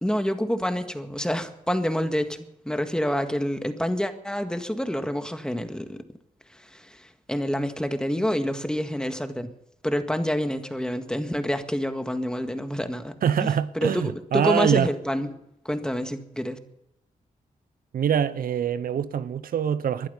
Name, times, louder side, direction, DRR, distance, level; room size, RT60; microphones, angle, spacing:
voice 1, 0.0-6.0 6.5-9.5 9.8-13.1 13.4-15.3 15.7-16.6, equal, 5° left, 1.8 m, -28 dB
voice 2, 13.2-14.9 17.9-20.1, right 8 dB, 80° right, 0.7 m, -24 dB
20.5 x 11.5 x 5.5 m
cardioid pair, 65°, 15 cm